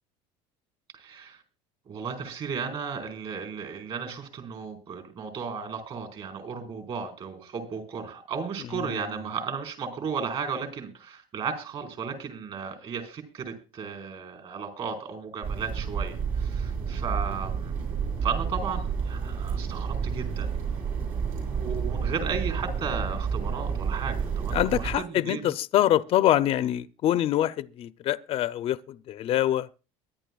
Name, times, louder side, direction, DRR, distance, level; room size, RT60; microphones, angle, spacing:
voice 1, 0.9-1.4 1.9-17.7 18.2-20.5 21.6-25.5, right 6 dB, 45° right, 4.6 m, -34 dB
sound 1, 15.4-24.9, right 6 dB, 70° right, 7.7 m, -30 dB
voice 2, 24.5-29.7, left 12 dB, 45° left, 0.6 m, -25 dB
22.5 x 11.0 x 2.4 m
cardioid pair, 125°, 14 cm